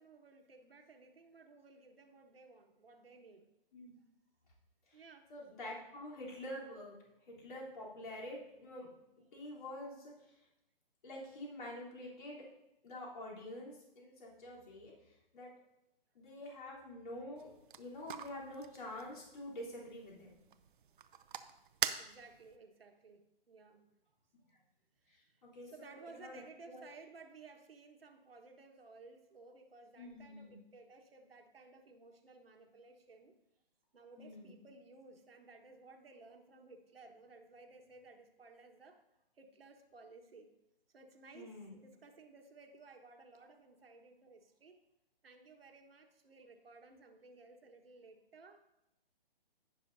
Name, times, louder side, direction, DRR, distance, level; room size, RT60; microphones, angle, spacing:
voice 1, 0.0-3.5 4.9-5.3 21.2-21.3 22.0-23.9 24.4-24.6 25.0-33.3 33.9-39.0 39.3-40.5 40.9-44.8 45.2-48.8, right 3 dB, 80° right, 4 dB, 1.4 m, -58 dB
voice 2, 5.3-6.9 7.3-8.9 9.3-10.1 11.0-12.5 12.8-14.9 15.3-15.5 16.2-20.4 25.1-26.9 30.0-30.6 34.2-34.5 41.3-41.7, left 1 dB, 55° left, -4 dB, 3.4 m, -47 dB
sound 1, 17.4-22.6, right 8 dB, 60° right, 0.7 m, -44 dB
17.5 x 6.3 x 2.7 m, 0.89 s
hypercardioid pair, 145°, 29 cm